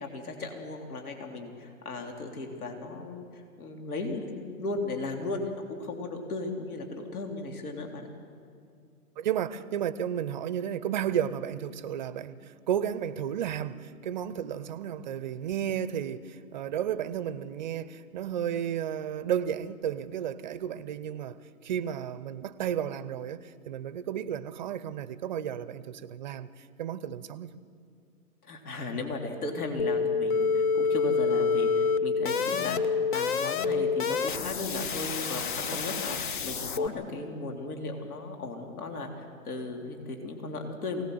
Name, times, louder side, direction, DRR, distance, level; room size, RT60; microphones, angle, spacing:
voice 1, 0.0-8.1 28.4-41.0, left 3 dB, 70° left, 3.6 m, -36 dB
voice 2, 9.2-27.6, right 9 dB, 30° right, 0.6 m, -33 dB
sound 1, 29.8-36.9, left 5 dB, 35° left, 0.6 m, -27 dB
23.5 x 18.0 x 7.8 m
hypercardioid pair, 140°, 46 cm